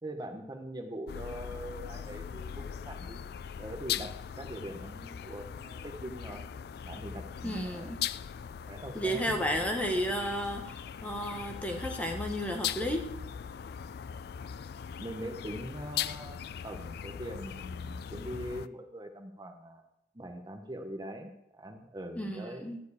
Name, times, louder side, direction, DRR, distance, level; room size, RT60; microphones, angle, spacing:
voice 1, 0.0-3.2 3.6-6.5 6.8-7.9 8.7-10.1 15.0-19.8 20.1-22.7, right 1 dB, 20° right, 5 dB, 1.0 m, -42 dB
sound 1, 1.1-18.7, left 8 dB, 60° left, 0.3 m, -40 dB
voice 2, 7.4-8.0 8.9-13.1 22.2-22.8, equal, 10° left, 3 dB, 1.0 m, -33 dB
12.0 x 4.6 x 8.3 m, 0.81 s
head